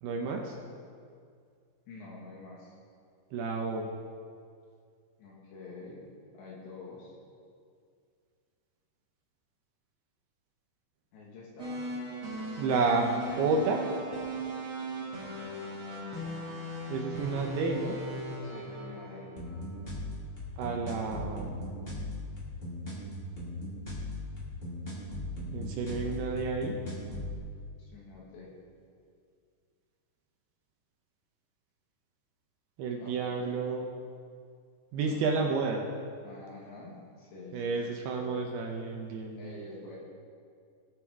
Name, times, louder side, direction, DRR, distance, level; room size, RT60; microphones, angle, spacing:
voice 1, 0.0-0.6 3.3-3.9 12.6-13.1 13.4-13.8 16.9-18.0 20.6-21.6 25.5-26.8 32.8-33.9 34.9-35.8 37.5-39.6, right 4 dB, 75° right, 1 dB, 2.5 m, -30 dB
voice 2, 1.9-2.7 5.2-6.0 6.3-7.1 11.1-11.8 16.8-17.5 18.4-19.3 27.8-28.5 33.0-33.6 35.1-35.6 36.2-38.3 39.4-40.0, left 3 dB, 75° left, -6 dB, 3.9 m, -48 dB
sound 1, 11.6-19.8, right 1 dB, 35° right, 2.6 m, -38 dB
sound 2, 19.4-27.4, left 1 dB, 30° left, 1.1 m, -38 dB
20.0 x 8.2 x 3.6 m, 2.2 s
omnidirectional pair, 5.3 m